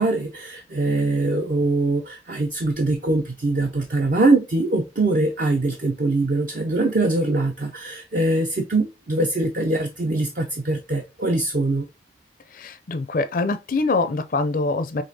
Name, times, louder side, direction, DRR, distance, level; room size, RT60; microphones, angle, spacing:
voice 1, 0.0-11.9, right 2 dB, 45° right, 0.5 m, -22 dB
voice 2, 12.5-15.0, left 3 dB, 45° left, 0.4 m, -24 dB
5.3 x 3.2 x 2.7 m
head